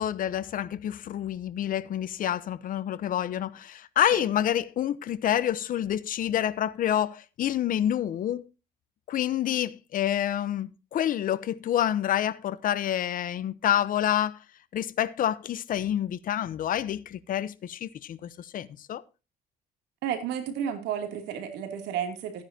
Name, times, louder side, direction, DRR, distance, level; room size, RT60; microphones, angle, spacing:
voice 1, 0.0-8.4 9.1-14.4 14.7-19.0, left 11 dB, 55° left, 0.8 m, -28 dB
voice 2, 20.0-22.4, right 8 dB, 90° right, 2.8 m, -32 dB
14.5 x 9.7 x 2.8 m
cardioid pair, 110°, 17 cm